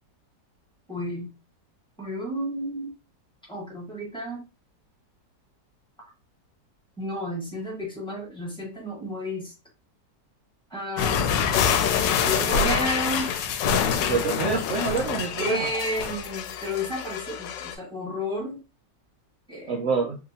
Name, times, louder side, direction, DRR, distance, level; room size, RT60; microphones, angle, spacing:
voice 1, 0.9-1.3 2.0-2.9 3.5-4.4 7.0-9.5 10.7-11.4 12.2-13.3 15.4-18.6 19.5-19.8, equal, 5° left, -2 dB, 1.1 m, -31 dB
sound 1, 11.0-17.7, left 7 dB, 80° left, 1.2 m, -26 dB
voice 2, 14.1-15.7 19.7-20.2, right 5 dB, 75° right, 0 dB, 0.6 m, -26 dB
3.3 x 2.8 x 2.7 m, 0.30 s
omnidirectional pair, 1.9 m